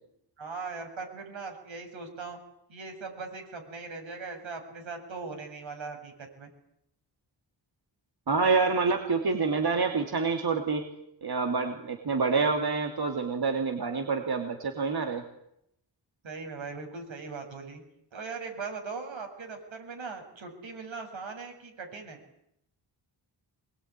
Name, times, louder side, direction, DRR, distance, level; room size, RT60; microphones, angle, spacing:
voice 1, 0.4-2.4 2.7-6.5 16.2-17.8 18.1-22.2, right 4 dB, 85° right, 4 dB, 7.7 m, -40 dB
voice 2, 8.3-10.8 11.2-15.2, right 4 dB, 55° right, 5 dB, 3.1 m, -27 dB
25.5 x 21.5 x 9.9 m, 0.77 s
wide cardioid pair, 135°, 45 cm